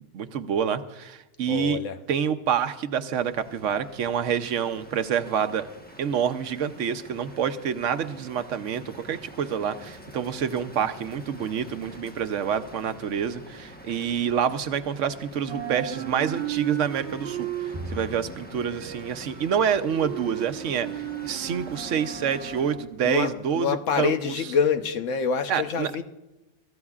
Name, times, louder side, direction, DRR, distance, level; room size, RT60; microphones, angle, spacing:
voice 1, 0.1-1.8 2.1-5.7 6.0-24.3 25.5-25.9, right 8 dB, 85° right, 1.1 m, -27 dB
voice 2, 1.5-2.0 23.0-26.0, left 6 dB, 85° left, 1.2 m, -26 dB
sound 1, 3.1-22.8, left 1 dB, 10° left, 1.0 m, -46 dB
sound 2, 12.6-15.1 15.4-23.5, right 13 dB, 65° right, 1.2 m, -36 dB
Bowed string instrument, 17.7-21.1, equal, 20° right, 0.8 m, -43 dB
23.5 x 14.0 x 2.4 m
omnidirectional pair, 1.3 m